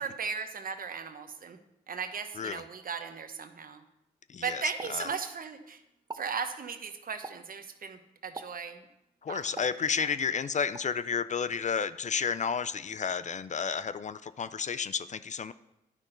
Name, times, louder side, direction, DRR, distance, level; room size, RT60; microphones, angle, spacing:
voice 1, 0.0-1.6 1.9-3.8 4.4-5.8 6.1-8.8 9.3-9.7 10.0-10.1, right 6 dB, 55° right, 8 dB, 0.9 m, -37 dB
voice 2, 4.3-4.6 4.9-5.1 9.2-15.5, left 6 dB, 45° left, 14 dB, 0.4 m, -31 dB
Explosion, 4.8-5.7 6.0-6.4 7.2-7.6 8.4-8.7 9.6-10.3 10.8-11.0, right 3 dB, 25° right, 0.5 m, -45 dB
10.5 x 5.9 x 3.9 m, 0.87 s
supercardioid pair, 50°, 18 cm